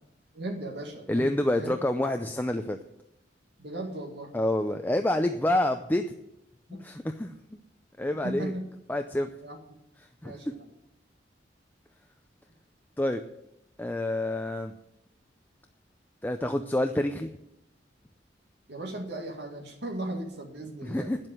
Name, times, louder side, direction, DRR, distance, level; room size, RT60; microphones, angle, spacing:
voice 1, 0.3-1.8 3.6-4.3 6.7-6.8 8.2-8.6 9.4-9.6 10.2-10.6 18.7-21.1, right 1 dB, 65° right, 1 dB, 2.1 m, -37 dB
voice 2, 1.1-2.8 4.3-6.2 6.7-7.3 8.0-8.5 8.9-9.3 10.2-10.5 13.0-13.2 13.8-14.7 16.2-17.3 20.8-21.2, left 1 dB, 10° left, 6 dB, 0.5 m, -28 dB
9.9 x 7.7 x 9.0 m, 0.83 s
head